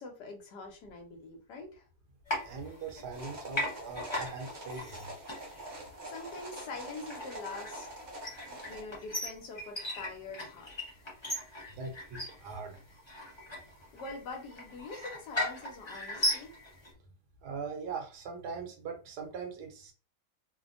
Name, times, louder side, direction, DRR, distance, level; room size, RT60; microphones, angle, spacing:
voice 1, 0.0-1.8 6.1-7.9 8.4-10.7 13.9-16.5, left 3 dB, 70° left, 1.3 m, -44 dB
sound 1, 2.3-3.2 3.5-16.9, left 1 dB, 30° left, 0.5 m, -38 dB
voice 2, 2.4-5.4 11.7-12.8 17.4-19.9, right 5 dB, 70° right, 1.1 m, -41 dB
sound 2, 3.1-8.8, right 1 dB, 90° right, 0.4 m, -45 dB
3.2 x 2.1 x 2.5 m
omnidirectional pair, 2.0 m